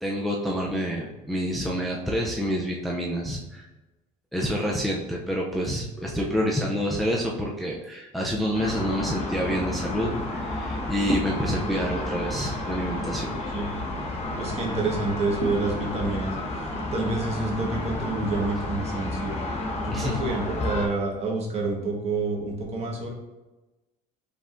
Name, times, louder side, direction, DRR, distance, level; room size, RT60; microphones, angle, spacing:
voice 1, 0.0-3.6 4.3-13.4 19.9-20.2, equal, ahead, -3 dB, 0.5 m, -28 dB
sound 1, 8.5-20.9, left 2 dB, 40° left, 0.8 m, -31 dB
voice 2, 14.4-16.3 16.9-19.3 19.8-23.1, right 3 dB, 40° right, 0 dB, 1.1 m, -28 dB
5.1 x 3.4 x 2.5 m, 1.1 s
cardioid pair, 135°, 16 cm